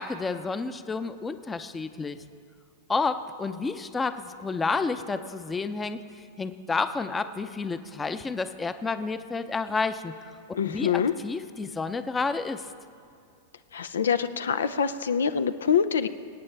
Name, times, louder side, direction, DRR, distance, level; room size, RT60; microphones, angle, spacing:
voice 1, 0.0-2.2 2.9-10.2 10.7-12.7, left 4 dB, 15° left, 10 dB, 0.6 m, -30 dB
voice 2, 10.5-11.1 13.7-16.1, left 7 dB, 85° left, 12 dB, 0.5 m, -25 dB
25.0 x 8.8 x 3.4 m, 2.4 s
hypercardioid pair, 115°, 0 cm